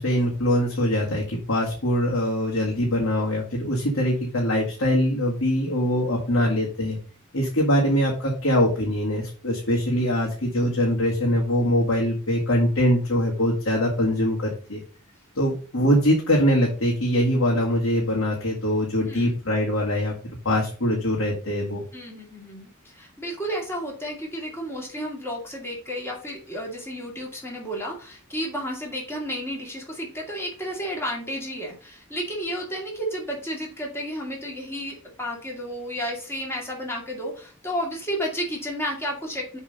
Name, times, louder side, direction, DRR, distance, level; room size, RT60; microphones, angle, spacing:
voice 1, 0.0-7.0 7.3-14.8 15.4-20.1 20.5-21.8, equal, 70° left, -3 dB, 1.9 m, -23 dB
voice 2, 21.9-39.6, equal, 10° left, -1 dB, 2.3 m, -32 dB
7.1 x 3.7 x 5.3 m, 0.38 s
head